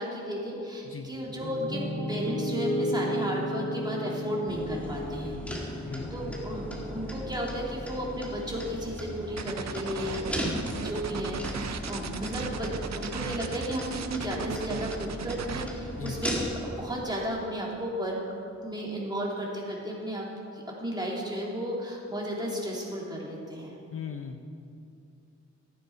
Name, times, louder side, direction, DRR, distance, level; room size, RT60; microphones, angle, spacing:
voice 1, 0.0-5.4 5.6-5.8 6.1-16.4 16.7-18.2 18.6-20.3 20.5-23.7, equal, 15° right, -4 dB, 2.7 m, -34 dB
Piano, 1.1-9.2, left 1 dB, 20° left, 2.3 m, -34 dB
sound 1, 4.5-16.8, equal, 5° left, 2.4 m, -37 dB
voice 2, 5.9-6.4 16.0-16.2 23.9-24.4, left 6 dB, 45° left, 5 dB, 0.7 m, -38 dB
sound 2, 9.4-15.7, right 6 dB, 65° right, 0.7 m, -36 dB
14.0 x 9.3 x 4.5 m, 2.5 s
wide cardioid pair, 80°, 30 cm